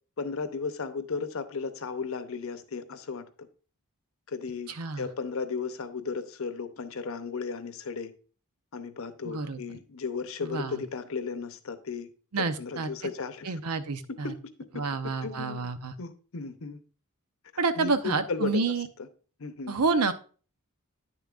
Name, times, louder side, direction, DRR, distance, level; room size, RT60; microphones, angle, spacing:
voice 1, 0.2-3.5 4.3-8.1 8.7-12.1 12.4-13.5 14.1-15.7 16.0-16.8 17.5-18.6 19.0-19.1 19.4-19.8, left 5 dB, 65° left, 0.7 m, -35 dB
voice 2, 4.8-5.1 9.2-9.6 10.4-10.8 12.3-12.9 13.5-14.3 14.8-15.9 17.6-18.9 19.7-20.1, right 4 dB, 85° right, 0.7 m, -28 dB
9.8 x 6.9 x 2.5 m
head